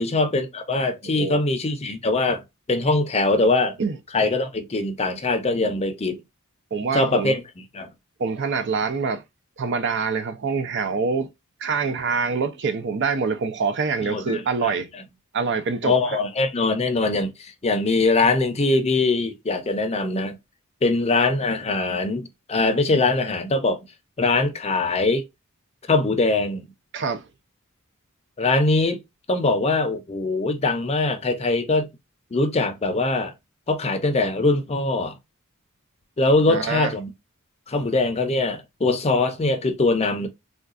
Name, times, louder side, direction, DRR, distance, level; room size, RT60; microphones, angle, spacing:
voice 1, 0.0-2.4 2.7-3.8 4.1-6.2 6.9-7.9 14.1-14.7 15.8-20.4 20.8-23.8 24.2-25.2 25.9-26.6 28.4-29.0 29.3-31.9 32.3-33.3 33.7-35.1 36.2-37.1 37.7-40.3, left 3 dB, 30° left, 0.5 m, -22 dB
voice 2, 6.7-7.4 8.2-9.2 9.6-11.3 11.6-14.9 15.3-15.9 26.9-27.2 36.5-36.9, right 5 dB, 55° right, 0.5 m, -25 dB
3.7 x 2.3 x 2.3 m
head